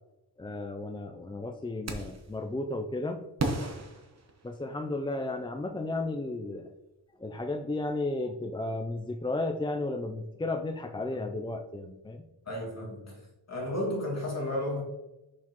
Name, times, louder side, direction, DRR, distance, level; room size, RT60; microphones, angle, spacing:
voice 1, 0.4-3.2 4.4-6.7 7.2-12.2, left 2 dB, 15° left, 5 dB, 0.3 m, -33 dB
sound 1, 1.9-2.3 3.4-4.9, right 2 dB, 40° right, 1.0 m, -34 dB
voice 2, 12.5-14.8, left 1 dB, 40° left, -2 dB, 2.2 m, -33 dB
6.4 x 5.9 x 3.0 m, 0.97 s
wide cardioid pair, 130°, 41 cm